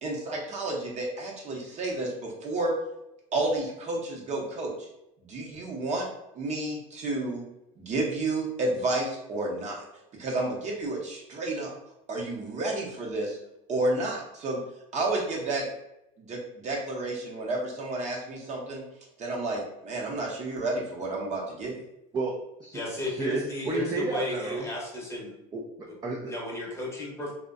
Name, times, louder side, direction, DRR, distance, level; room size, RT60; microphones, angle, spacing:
voice 1, 0.0-2.7 3.3-4.9 5.3-6.0 6.3-7.4 7.8-9.8 10.2-11.7 12.1-13.4 13.7-14.6 14.9-15.6 16.2-18.8 19.2-21.7, right 2 dB, 35° right, -2 dB, 0.7 m, -31 dB
voice 2, 22.1-22.8 23.2-24.7 25.5-26.3, right 2 dB, 20° right, -1 dB, 0.4 m, -32 dB
voice 3, 22.7-25.3 25.9-26.0 26.3-27.3, left 1 dB, 15° left, -4 dB, 0.8 m, -34 dB
2.5 x 2.1 x 2.4 m, 0.86 s
supercardioid pair, 105°, 19 cm